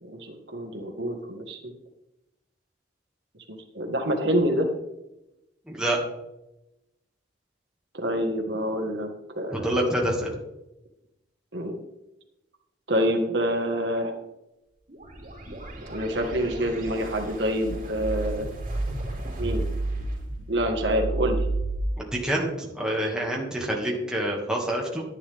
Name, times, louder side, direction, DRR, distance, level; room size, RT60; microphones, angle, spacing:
voice 1, 0.0-1.7 3.7-4.7 7.9-9.1 9.4-9.8 11.5-11.8 12.9-14.1 15.9-18.5 19.4-19.7 20.5-21.5, equal, 70° right, 3 dB, 1.7 m, -27 dB
voice 2, 5.7-6.0 9.5-10.3 22.0-22.5 22.7-25.0, right 1 dB, 5° right, -2 dB, 2.2 m, -27 dB
sound 1, 14.9-21.8, right 2 dB, 45° right, 4.2 m, -32 dB
11.5 x 11.0 x 3.6 m, 0.93 s
head